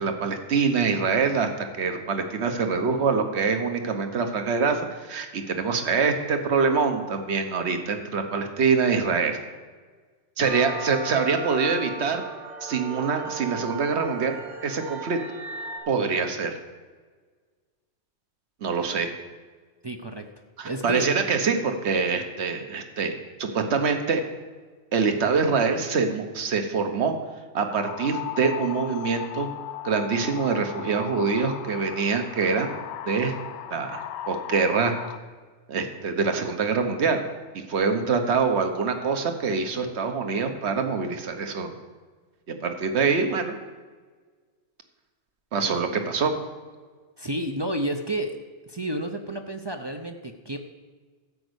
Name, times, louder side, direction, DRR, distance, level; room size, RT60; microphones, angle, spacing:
voice 1, 0.0-9.4 10.4-12.2 12.6-15.2 15.9-16.6 18.6-19.1 20.6-23.1 23.4-24.2 24.9-27.1 27.5-29.5 29.8-32.7 33.1-33.3 33.7-34.9 35.7-37.2 37.5-41.7 42.6-43.5 45.5-46.3, right 5 dB, 65° right, 6 dB, 1.3 m, -25 dB
sound 1, 10.4-15.8, right 2 dB, 80° right, 2.9 m, -36 dB
voice 2, 19.8-20.3 20.6-21.1 47.2-48.4 48.7-50.6, right 1 dB, 30° right, 4 dB, 0.5 m, -30 dB
sound 2, 27.7-35.2, left 12 dB, 70° left, 0.8 m, -37 dB
13.0 x 5.3 x 8.1 m, 1.5 s
omnidirectional pair, 1.3 m